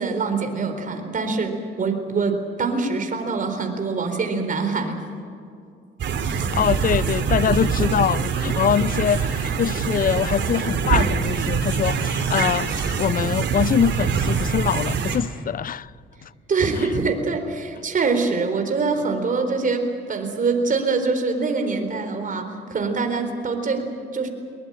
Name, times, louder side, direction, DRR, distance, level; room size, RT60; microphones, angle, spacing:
voice 1, 0.0-5.0 16.5-24.3, right 4 dB, 40° right, 4.0 m, -24 dB
sound 1, 6.0-15.2, right 6 dB, 65° right, 3.1 m, -24 dB
voice 2, 6.5-15.9 16.2-16.3, left 8 dB, 45° left, 0.5 m, -23 dB
22.0 x 20.5 x 8.9 m
cardioid pair, 90°, 20 cm